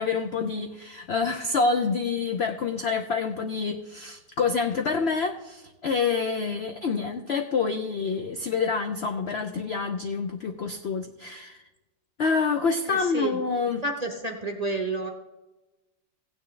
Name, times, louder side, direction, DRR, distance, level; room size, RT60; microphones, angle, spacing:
voice 1, 0.0-11.6 12.2-13.8, left 5 dB, 85° left, 6 dB, 0.5 m, -27 dB
voice 2, 13.8-15.1, right 2 dB, 40° right, 2 dB, 0.6 m, -29 dB
16.0 x 9.2 x 3.2 m, 1.1 s
omnidirectional pair, 1.9 m